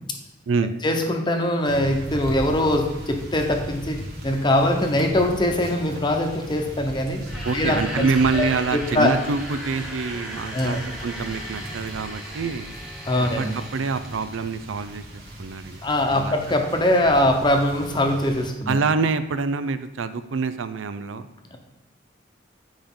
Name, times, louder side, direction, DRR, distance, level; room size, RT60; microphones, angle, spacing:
voice 1, 0.8-4.0 4.2-7.2 7.5-8.1 8.4-8.5 8.7-9.1 10.5-10.8 13.1-13.5 15.8-18.8, left 1 dB, 25° left, 3 dB, 0.9 m, -22 dB
sound 1, 1.7-18.5, equal, 55° right, 1.8 m, -38 dB
sound 2, 7.2-14.4, equal, 5° right, 1.2 m, -36 dB
voice 2, 7.4-12.7 13.2-15.8 16.1-16.6 18.7-21.3, right 4 dB, 90° right, 12 dB, 0.5 m, -26 dB
9.2 x 5.1 x 3.7 m, 0.98 s
head